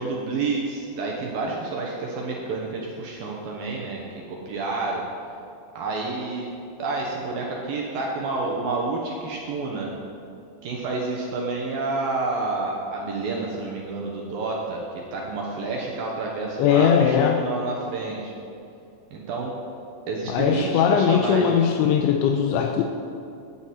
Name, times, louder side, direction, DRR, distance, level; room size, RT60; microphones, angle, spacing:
voice 1, 0.0-4.0 4.3-5.0 5.8-6.5 6.8-9.9 10.6-18.3 19.1-19.5 20.1-21.7, right 3 dB, 75° right, -2 dB, 2.1 m, -29 dB
voice 2, 16.6-17.4 20.3-22.8, left 8 dB, 85° left, 4 dB, 2.8 m, -20 dB
18.0 x 9.4 x 4.3 m, 2.6 s
omnidirectional pair, 5.7 m